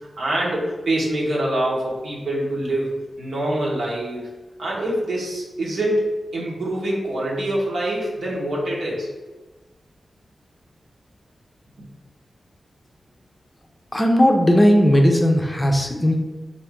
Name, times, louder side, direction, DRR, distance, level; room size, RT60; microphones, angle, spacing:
voice 1, 0.2-4.3 4.6-9.1, right 1 dB, 85° right, -4 dB, 1.1 m, -25 dB
voice 2, 13.9-16.2, equal, 15° left, 2 dB, 0.5 m, -16 dB
3.8 x 2.6 x 3.6 m, 1.2 s
wide cardioid pair, 95°, 0 cm